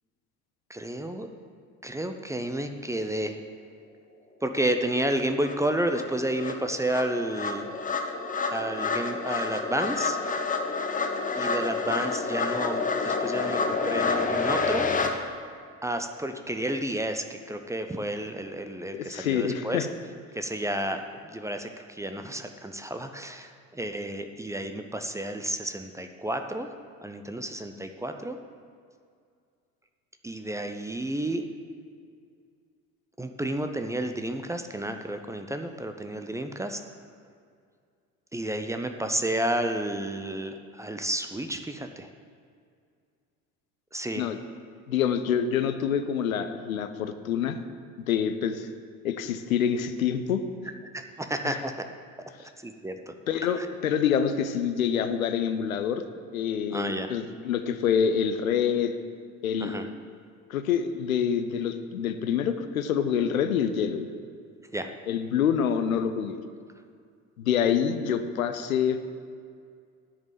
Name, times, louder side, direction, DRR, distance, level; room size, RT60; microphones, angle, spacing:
voice 1, 0.7-1.3 1.8-3.4 4.4-7.7 8.5-10.2 11.3-14.9 15.8-19.9 20.3-26.7 27.0-28.4 30.2-31.4 33.2-36.8 38.3-42.1 43.9-44.3 50.9-51.7 52.6-53.1 53.6-53.7 56.7-57.1 59.6-59.9 64.7-64.9, right 1 dB, 5° right, 6 dB, 0.6 m, -31 dB
sound 1, 5.0-5.1 5.4-15.1, left 4 dB, 20° left, 0.9 m, -29 dB
voice 2, 18.9-19.9 44.1-44.4 44.9-47.6 48.1-48.7 49.0-50.4 51.4-51.5 53.3-56.0 56.3-58.9 59.4-59.8 60.5-64.1 65.1-66.4 67.4-69.2, left 8 dB, 80° left, 9 dB, 0.6 m, -26 dB
9.7 x 5.2 x 7.3 m, 2.2 s
figure-of-eight pair, 60°, 41 cm